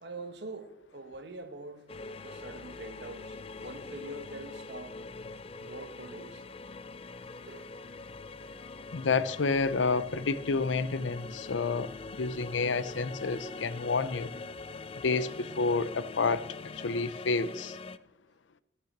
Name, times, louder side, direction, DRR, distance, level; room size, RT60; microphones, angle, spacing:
voice 1, 0.0-1.8 2.2-4.9 5.6-6.4 7.5-8.0, right 2 dB, 65° right, 1.2 m, -44 dB
sound 1, 1.9-18.0, left 3 dB, 30° left, 0.4 m, -43 dB
voice 2, 8.9-11.9 12.2-14.3 15.0-17.8, left 4 dB, 80° left, 0.7 m, -29 dB
14.5 x 6.3 x 7.2 m
head